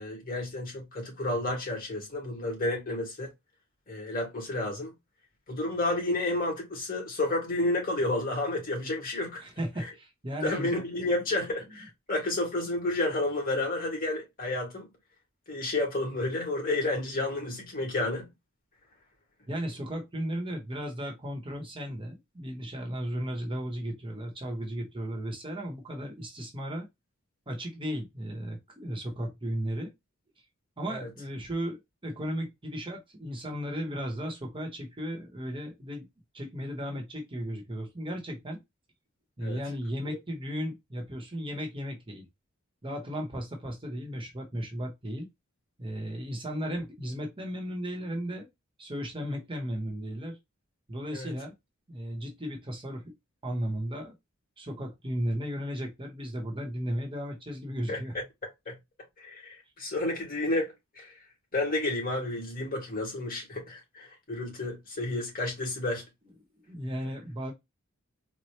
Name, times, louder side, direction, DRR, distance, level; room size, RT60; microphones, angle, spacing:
voice 1, 0.0-3.3 3.9-4.9 5.5-9.5 9.8-9.9 10.4-14.9 15.5-18.3 30.9-31.1 39.4-39.6 51.1-51.3 57.9-58.2 58.7-58.8 59.2-61.1 61.5-66.0, left 2 dB, 45° left, 2.2 m, -31 dB
voice 2, 9.4-11.1 19.5-26.9 27.5-29.9 30.8-36.1 36.3-38.6 39.4-42.2 42.8-45.3 45.8-48.5 48.8-50.4 50.9-51.5 51.9-53.0 53.4-54.1 54.6-58.1 66.6-67.5, equal, 25° right, 1.0 m, -35 dB
4.2 x 2.2 x 3.2 m
head